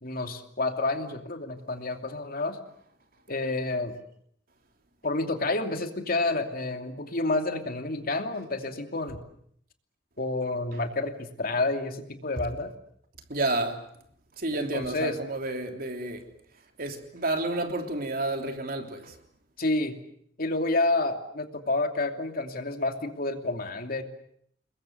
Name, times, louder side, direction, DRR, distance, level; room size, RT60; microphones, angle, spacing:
voice 1, 0.0-2.6 3.3-3.9 5.0-9.2 10.2-12.7 14.5-15.2 19.6-20.0 20.4-24.0, left 2 dB, 50° left, 2.8 m, -29 dB
voice 2, 13.3-13.8 14.4-16.2 16.8-19.1, right 2 dB, 55° right, 3.3 m, -30 dB
28.5 x 21.5 x 7.9 m
head